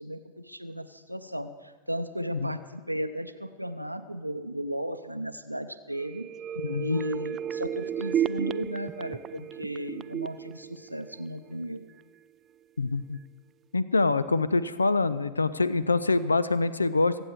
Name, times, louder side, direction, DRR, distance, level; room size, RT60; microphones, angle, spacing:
voice 1, 0.0-6.3 6.8-11.9, equal, 90° right, 8 dB, 0.6 m, -35 dB
sound 1, 5.9-11.6 12.0-12.1, right 9 dB, 25° right, 0.3 m, -34 dB
voice 2, 6.6-7.0 12.8-13.2 13.7-17.2, left 3 dB, 80° left, 16 dB, 0.5 m, -25 dB
23.5 x 8.0 x 4.8 m, 1.3 s
figure-of-eight pair, 90°, 0 cm